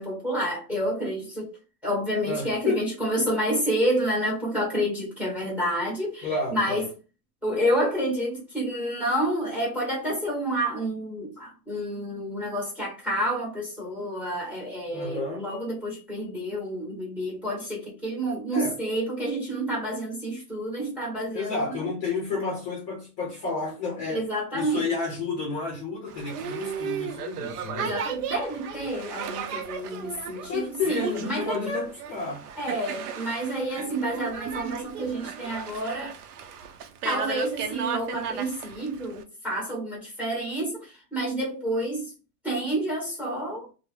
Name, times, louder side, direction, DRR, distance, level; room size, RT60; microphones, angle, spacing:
voice 1, 0.0-1.6 1.8-6.9 7.4-21.9 24.1-24.9 27.8-31.8 32.6-36.2 37.0-42.1 42.4-43.7, right 1 dB, 5° right, 0.8 m, -29 dB
voice 2, 2.3-2.9 6.2-6.8 14.9-15.5 18.5-18.8 21.3-24.3 24.5-28.0 30.5-32.5, left 4 dB, 25° left, 0.5 m, -31 dB
Boat Water vehicle, 26.1-39.2, right 7 dB, 80° right, 0.6 m, -35 dB
2.2 x 2.0 x 3.2 m
supercardioid pair, 155°, 46 cm